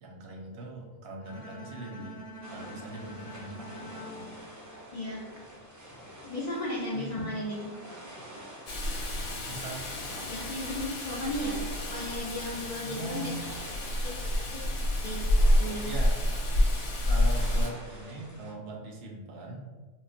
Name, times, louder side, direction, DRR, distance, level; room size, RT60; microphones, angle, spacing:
voice 1, 0.0-2.2 2.5-4.4 6.9-7.1 9.5-9.8 12.9-13.3 15.8-16.2 17.1-19.6, right 2 dB, 65° right, 0 dB, 0.7 m, -41 dB
Bowed string instrument, 1.2-5.4, equal, 25° left, 0.8 m, -46 dB
sound 1, 2.4-18.5, right 1 dB, 30° right, 0.3 m, -48 dB
voice 2, 4.9-5.3 6.2-7.7 10.3-13.3 14.0-14.2 14.5-14.7 15.0-15.3 15.6-15.9, left 1 dB, 60° left, -7 dB, 0.4 m, -35 dB
Rain, 8.7-17.7, left 1 dB, 80° left, 1.0 m, -28 dB
3.8 x 2.0 x 2.4 m, 1.3 s
omnidirectional pair, 1.2 m